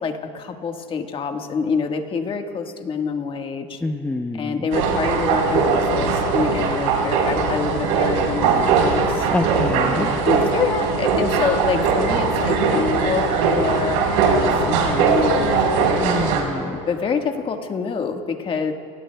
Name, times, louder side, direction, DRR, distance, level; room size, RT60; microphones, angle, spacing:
voice 1, 0.0-3.8 4.3-9.3 9.8-15.6 16.7-18.7, left 5 dB, 35° left, 5 dB, 1.5 m, -26 dB
voice 2, 3.8-4.7 9.3-10.1 16.0-16.8, left 2 dB, 10° left, 5 dB, 0.7 m, -26 dB
sound 1, 4.7-16.4, right 4 dB, 70° right, 4.1 m, -20 dB
30.0 x 20.0 x 2.3 m, 2.5 s
supercardioid pair, 100°, 16 cm